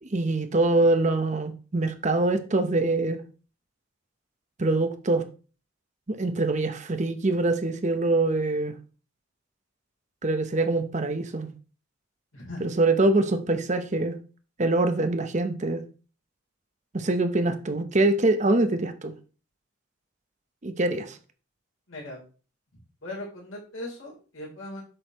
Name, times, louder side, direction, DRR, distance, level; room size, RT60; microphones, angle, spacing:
voice 1, 0.0-3.2 4.6-5.2 6.1-8.8 10.2-11.5 12.6-14.2 14.6-15.8 16.9-19.1 20.6-21.2, right 2 dB, 35° right, 0.8 m, -24 dB
voice 2, 12.3-12.6 21.9-22.2 23.0-24.8, left 1 dB, 70° left, 3.4 m, -38 dB
7.8 x 6.2 x 3.0 m
head